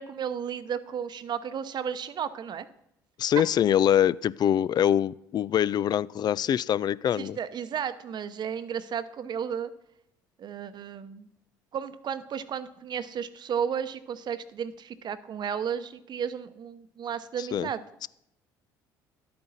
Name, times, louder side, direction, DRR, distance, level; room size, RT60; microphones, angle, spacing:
voice 1, 0.0-2.7 7.1-9.7 10.4-11.3 11.7-17.8, right 8 dB, 50° right, 13 dB, 0.8 m, -33 dB
voice 2, 3.2-7.4 17.4-17.7 18.0-18.1, left 10 dB, 45° left, 20 dB, 0.4 m, -24 dB
11.5 x 8.7 x 4.2 m, 0.80 s
hypercardioid pair, 65°, 10 cm